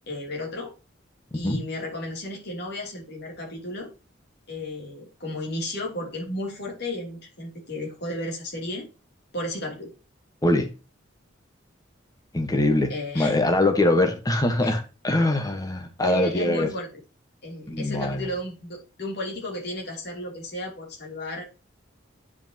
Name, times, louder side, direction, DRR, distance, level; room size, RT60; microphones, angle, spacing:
voice 1, 0.1-0.7 1.3-3.9 4.5-8.9 9.3-9.9 12.9-13.3 14.6-14.7 16.0-16.9 17.4-21.5, left 1 dB, 55° left, 2.9 m, -33 dB
voice 2, 12.3-16.7 17.7-18.3, left 2 dB, 20° left, 1.2 m, -23 dB
9.8 x 5.1 x 2.9 m
head